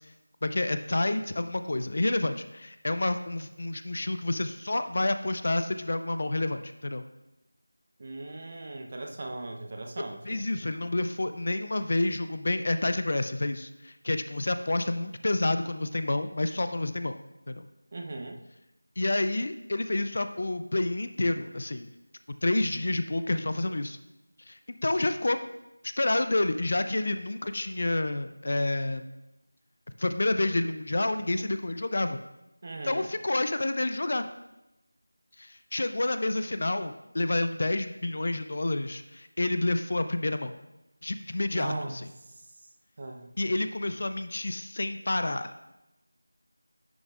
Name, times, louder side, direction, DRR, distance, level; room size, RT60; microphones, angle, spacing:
voice 1, 0.4-7.0 10.2-17.2 17.5-17.7 19.0-21.9 22.4-24.0 24.5-25.4 25.8-29.1 30.0-32.2 32.8-34.3 35.4-40.5 41.0-42.1 43.4-45.5, left 2 dB, 45° left, 9 dB, 0.4 m, -29 dB
voice 2, 8.0-10.4 17.9-18.4 32.6-33.0 41.5-42.0 43.0-43.3, right 2 dB, 35° right, 3 dB, 0.7 m, -38 dB
10.0 x 6.5 x 2.5 m, 0.94 s
figure-of-eight pair, 170°, 0 cm